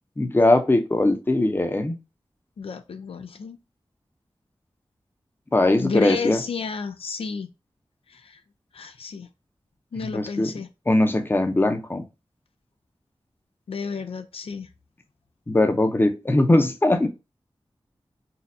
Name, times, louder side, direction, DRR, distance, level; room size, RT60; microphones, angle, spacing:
voice 1, 0.2-2.0 5.5-6.4 10.0-10.5 10.9-12.0 15.5-17.1, left 2 dB, 20° left, 6 dB, 0.6 m, -20 dB
voice 2, 2.6-3.6 5.8-7.5 8.1-8.4 8.7-9.3 9.9-10.7 13.7-14.7, left 5 dB, 80° left, 8 dB, 0.4 m, -31 dB
4.1 x 2.3 x 2.6 m, 0.27 s
wide cardioid pair, 75°, 9 cm